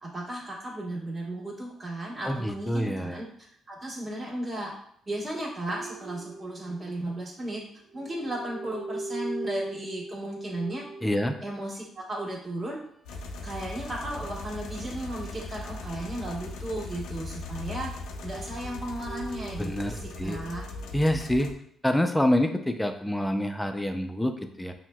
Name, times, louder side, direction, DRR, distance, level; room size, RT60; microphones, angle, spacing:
voice 1, 0.0-3.3 3.7-4.7 5.1-7.6 7.9-10.9 11.4-12.8 13.4-17.9 18.2-20.6, right 1 dB, 30° right, -4 dB, 1.3 m, -35 dB
voice 2, 2.2-3.2 11.0-11.4 19.6-20.4 20.9-21.5 21.8-24.7, left 1 dB, 5° left, 6 dB, 0.4 m, -27 dB
sound 1, 5.7-7.6 7.9-11.7 13.3-16.6 16.9-21.2, right 1 dB, 55° right, 1.0 m, -42 dB
sound 2, 13.0-21.5, left 2 dB, 85° left, 0.4 m, -39 dB
5.8 x 2.1 x 2.2 m, 0.68 s
cardioid pair, 90°, 0 cm